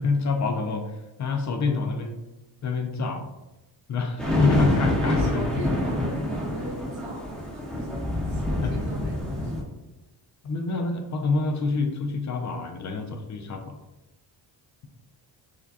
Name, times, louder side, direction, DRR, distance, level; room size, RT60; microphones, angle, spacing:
voice 1, 0.0-2.2 2.6-3.2 3.9-5.6 8.6-8.7 10.4-13.8, left 3 dB, 40° left, 5 dB, 0.4 m, -27 dB
sound 1, 4.2-9.6, left 1 dB, ahead, 0.9 m, -27 dB
voice 2, 5.0-8.0 8.3-9.5, right 1 dB, 75° right, -3 dB, 1.4 m, -38 dB
4.9 x 2.2 x 2.6 m, 1.0 s
cardioid pair, 110°, 43 cm